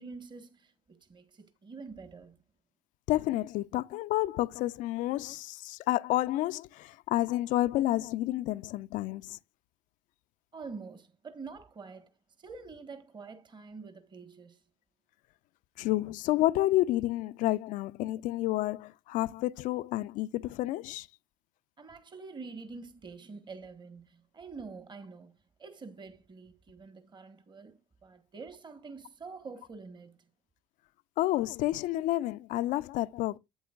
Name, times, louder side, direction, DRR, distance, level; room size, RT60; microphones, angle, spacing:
voice 1, 0.0-2.4 10.5-12.1 12.4-14.6 21.8-30.2, right 4 dB, 30° right, 1.4 m, -46 dB
voice 2, 3.1-9.4 15.8-21.1 31.2-33.4, left 15 dB, 55° left, 0.5 m, -30 dB
12.0 x 8.4 x 2.4 m
hypercardioid pair, 65°, 16 cm